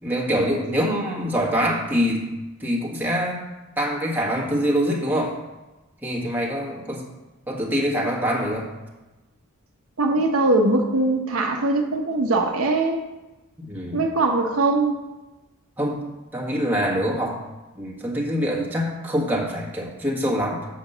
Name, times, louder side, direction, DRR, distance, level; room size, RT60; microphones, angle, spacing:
voice 1, 0.0-2.3 2.6-3.4 3.8-5.4 6.0-7.0 7.5-8.7 13.6-14.1 15.8-16.0 16.3-17.4 17.7-20.7, equal, 10° right, -4 dB, 1.6 m, -24 dB
voice 2, 10.0-13.0 13.9-15.0, right 2 dB, 80° right, 2 dB, 1.0 m, -21 dB
7.2 x 5.0 x 6.7 m, 1.1 s
head